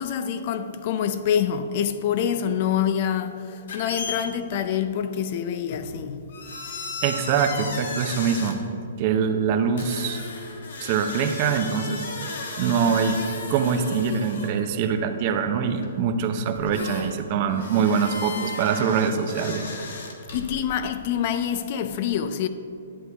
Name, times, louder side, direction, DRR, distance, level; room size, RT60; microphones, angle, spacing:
voice 1, 0.0-6.4 20.3-22.5, left 8 dB, 40° left, 0.4 m, -26 dB
sound 1, 3.7-4.2 5.7-5.9 6.3-8.5 9.8-14.6 15.8-15.9 16.6-17.1 17.4-20.6, left 3 dB, 65° left, 1.3 m, -35 dB
voice 2, 7.0-8.6 9.0-10.2 10.8-19.6, right 6 dB, 35° right, 0.6 m, -24 dB
11.0 x 7.6 x 3.4 m
hypercardioid pair, 155°, 0 cm